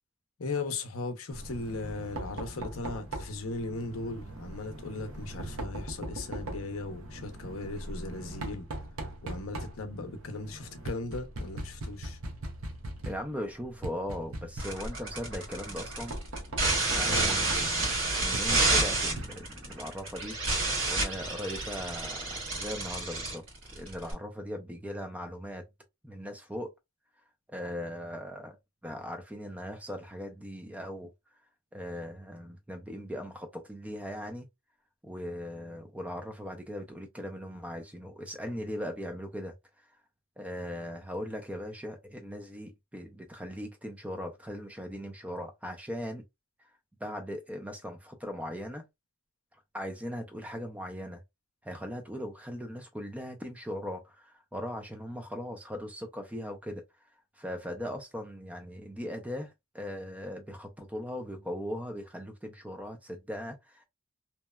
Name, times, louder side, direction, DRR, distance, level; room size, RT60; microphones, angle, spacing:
voice 1, 0.4-8.7 9.2-12.2 17.0-17.5, left 3 dB, 90° left, 0.6 m, -37 dB
Knock, 1.3-19.7, right 1 dB, 85° right, 0.7 m, -41 dB
voice 2, 13.0-16.2 16.9-20.4 20.9-23.4 23.7-25.7 26.0-26.7 27.5-28.6 28.8-31.1 31.7-34.5 35.0-39.9 40.4-46.2 47.0-48.8 49.7-51.2 51.6-56.8 57.4-63.8, equal, 5° right, 0.4 m, -39 dB
sound 1, 14.6-24.1, right 2 dB, 65° right, 1.6 m, -29 dB
2.8 x 2.1 x 2.2 m
head